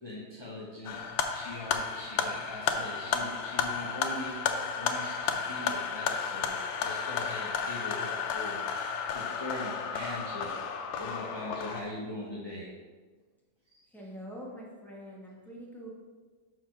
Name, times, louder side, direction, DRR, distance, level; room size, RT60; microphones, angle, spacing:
voice 1, 0.0-8.6 9.1-10.6 11.0-12.7 13.7-13.8, left 1 dB, 25° left, -6 dB, 0.6 m, -41 dB
sound 1, 0.8-11.8, left 6 dB, 80° left, 1.4 m, -33 dB
voice 2, 13.9-15.9, equal, ahead, -4 dB, 1.2 m, -44 dB
5.8 x 4.7 x 6.0 m, 1.4 s
omnidirectional pair, 2.0 m